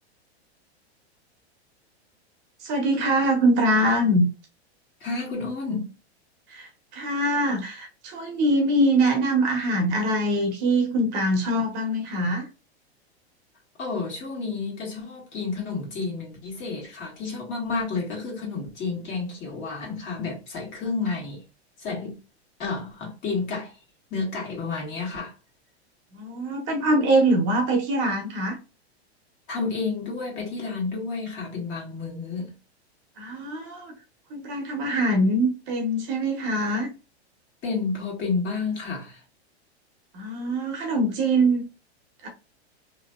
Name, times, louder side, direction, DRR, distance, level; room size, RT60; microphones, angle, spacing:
voice 1, 2.6-4.2 6.5-12.5 26.1-28.6 33.2-33.9 34.3-36.9 40.1-41.6 42.2-42.3, right 1 dB, 35° right, 0.8 m, -23 dB
voice 2, 5.0-5.9 13.8-21.4 21.8-22.2 22.6-23.7 24.1-25.3 29.5-32.5 37.6-39.2, left 4 dB, 35° left, 1.6 m, -30 dB
2.8 x 2.8 x 2.2 m
hypercardioid pair, 135°, 33 cm